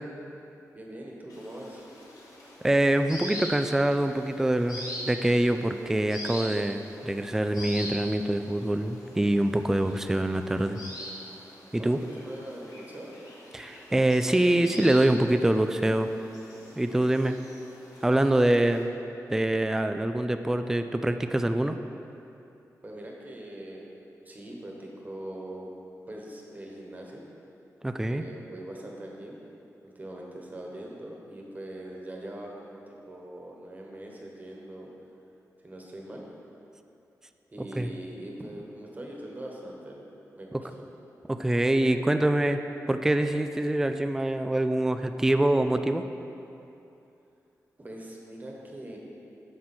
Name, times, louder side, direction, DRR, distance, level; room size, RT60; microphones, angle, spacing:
voice 1, 0.7-1.9 11.8-13.1 22.8-23.9 24.2-25.7 26.1-27.2 28.1-29.4 29.8-34.9 35.6-36.3 37.5-40.0 40.4-40.8 47.8-49.0, right 1 dB, 25° right, -1 dB, 1.3 m, -42 dB
sound 1, 1.3-18.8, equal, 85° left, 1.4 m, -43 dB
voice 2, 2.6-10.8 11.7-12.0 13.5-16.1 16.8-17.3 18.0-18.9 19.3-21.8 27.8-28.2 37.6-37.9 41.3-42.6 42.9-46.0, right 1 dB, 5° right, 8 dB, 0.3 m, -25 dB
9.4 x 6.2 x 4.4 m, 2.8 s
wide cardioid pair, 115°, 6 cm